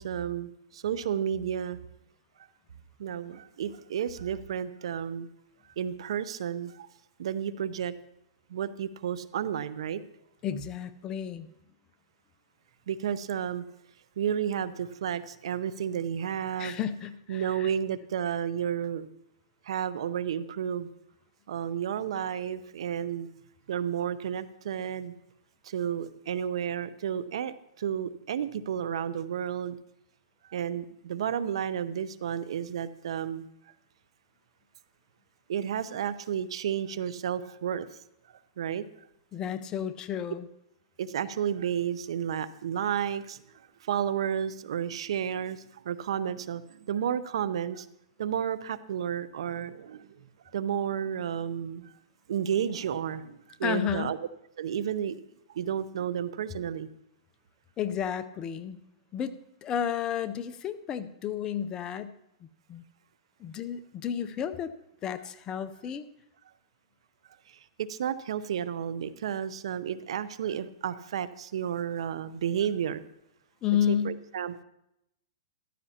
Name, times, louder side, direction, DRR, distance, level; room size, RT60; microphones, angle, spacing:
voice 1, 0.0-1.8 3.0-5.3 5.8-6.9 7.2-7.9 8.5-10.0 12.9-13.6 14.2-16.7 17.3-19.1 19.7-20.9 21.5-23.3 23.7-25.1 25.6-29.8 30.5-33.5 35.5-38.0 38.6-38.9 41.0-43.4 43.8-47.9 48.2-50.1 50.5-51.9 52.3-54.2 54.6-55.2 55.5-56.9 67.8-73.0 73.9-74.6, right 9 dB, 70° right, 16 dB, 0.6 m, -32 dB
voice 2, 10.4-11.5 16.6-17.7 39.3-40.5 53.6-54.1 57.8-58.8 59.1-62.1 62.4-62.8 63.4-64.7 65.0-66.1 73.6-74.2, left 9 dB, 25° left, 11 dB, 0.6 m, -32 dB
14.5 x 13.0 x 2.9 m, 0.81 s
hypercardioid pair, 145°, 3 cm